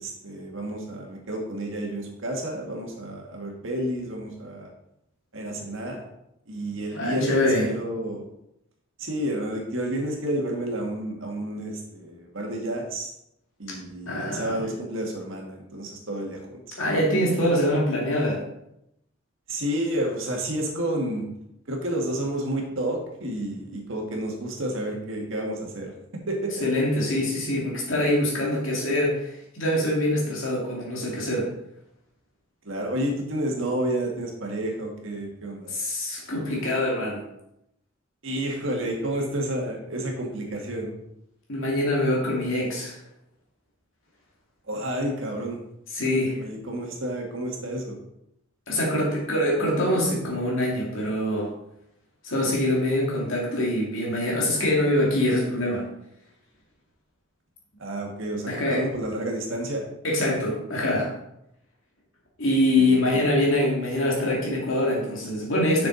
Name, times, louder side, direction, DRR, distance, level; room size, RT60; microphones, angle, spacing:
voice 1, 0.0-4.7 5.3-6.1 6.5-8.3 9.0-13.1 13.6-16.6 19.5-21.2 21.7-25.9 26.3-26.6 32.6-35.7 38.2-40.9 44.7-45.6 46.4-48.0 57.8-59.9 62.8-63.3, right 1 dB, 65° right, 0 dB, 1.8 m, -30 dB
voice 2, 6.9-7.7 14.1-14.6 16.8-18.4 26.6-31.5 35.7-37.2 41.5-43.0 45.9-46.4 48.7-51.5 52.2-55.8 58.5-58.8 60.0-61.1 62.4-65.9, left 1 dB, 70° left, -4 dB, 2.5 m, -24 dB
6.8 x 6.7 x 4.0 m, 0.81 s
head